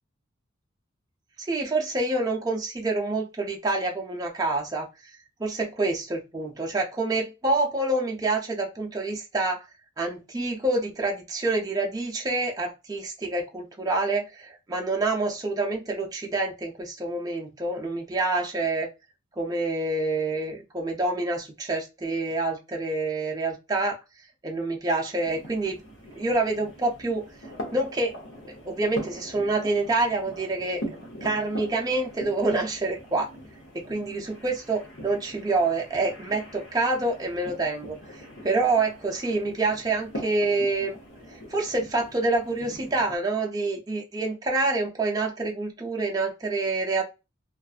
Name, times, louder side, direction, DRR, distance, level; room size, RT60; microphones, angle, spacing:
voice 1, 1.4-4.9 5.4-9.6 10.0-18.9 19.4-24.0 24.4-25.8 26.2-27.3 27.7-28.2 28.6-31.0 31.2-33.3 33.7-41.0 41.3-47.0, right 2 dB, 20° right, 0 dB, 0.4 m, -27 dB
sound 1, 25.2-43.2, equal, 70° left, 0.8 m, -42 dB
2.5 x 2.3 x 2.3 m, 0.26 s
head